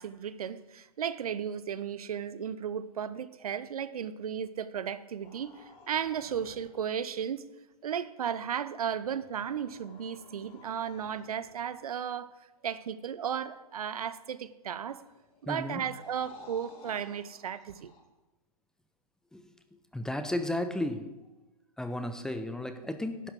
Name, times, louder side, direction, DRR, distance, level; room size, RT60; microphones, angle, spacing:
voice 1, 0.0-7.4 7.8-12.3 12.6-15.0 15.4-17.9, right 8 dB, 75° right, 0.7 m, -35 dB
sound 1, 5.2-7.0 8.6-11.8 14.6-18.0, left 3 dB, 30° left, 2.6 m, -55 dB
voice 2, 15.5-15.8 19.3-19.5 19.9-21.2 21.8-23.3, left 1 dB, 5° left, 0.6 m, -34 dB
11.5 x 6.0 x 7.5 m
hypercardioid pair, 125°, 19 cm